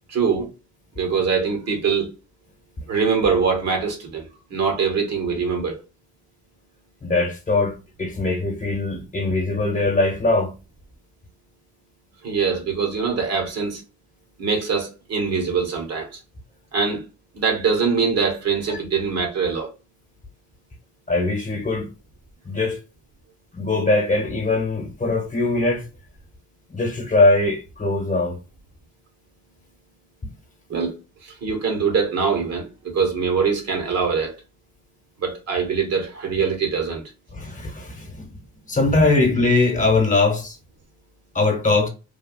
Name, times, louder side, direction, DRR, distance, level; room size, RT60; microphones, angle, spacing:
voice 1, 0.1-0.5 1.0-2.1 2.9-5.8 12.2-13.8 14.4-16.2 16.7-17.0 17.3-19.7 30.7-31.0 31.2-34.3 35.2-37.0, right 5 dB, 55° right, 1.2 m, -23 dB
voice 2, 7.0-10.5 18.7-18.8 21.1-21.9 22.4-22.8 23.5-25.8 26.7-28.4 37.3-38.3 38.7-40.6 41.3-41.9, left 2 dB, 25° left, 1.1 m, -21 dB
3.4 x 2.3 x 2.2 m
cardioid pair, 90°, 30 cm